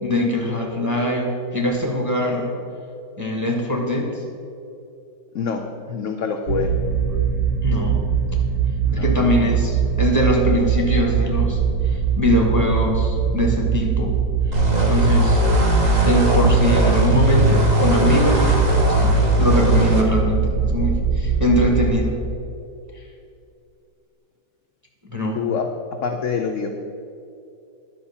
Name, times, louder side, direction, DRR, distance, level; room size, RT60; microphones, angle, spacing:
voice 1, 0.0-2.5 3.2-4.2 7.6-8.0 8.9-14.1 14.9-15.4 16.0-18.6 18.9-22.2 25.1-25.4, left 1 dB, 10° right, 0 dB, 1.1 m, -22 dB
voice 2, 5.9-6.7 8.8-9.1 25.3-25.7 26.0-26.7, left 6 dB, 65° left, 3 dB, 0.8 m, -25 dB
sound 1, 6.5-22.0, right 7 dB, 60° right, 1.3 m, -22 dB
sound 2, 14.5-20.0, right 1 dB, 30° right, 0.9 m, -19 dB
10.5 x 4.7 x 7.0 m, 2.5 s
omnidirectional pair, 1.9 m